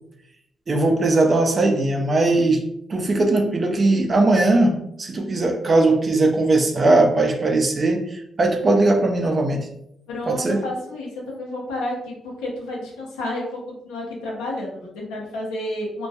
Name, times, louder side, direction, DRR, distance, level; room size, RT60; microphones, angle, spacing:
voice 1, 0.7-2.6 2.9-9.7 10.3-10.6, right 2 dB, 45° right, 0.4 m, -19 dB
voice 2, 10.1-16.1, left 1 dB, 90° left, 0.6 m, -31 dB
2.2 x 2.2 x 2.7 m
supercardioid pair, 50°, 0 cm